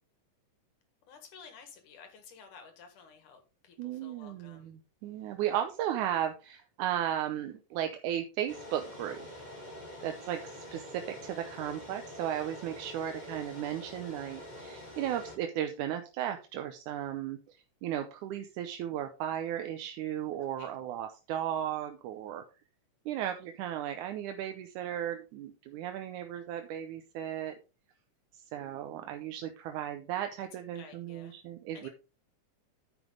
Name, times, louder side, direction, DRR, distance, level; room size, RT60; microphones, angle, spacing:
voice 1, 1.1-4.7 20.4-20.7 30.7-31.4 31.7-31.9, left 6 dB, 70° left, 6 dB, 3.0 m, -53 dB
voice 2, 3.8-9.2 10.0-22.4 23.1-27.6 28.3-31.9, right 11 dB, 75° right, 6 dB, 2.1 m, -35 dB
sound 1, 8.5-15.4, left 1 dB, 15° left, 2.0 m, -46 dB
9.7 x 7.1 x 3.8 m, 0.31 s
omnidirectional pair, 3.7 m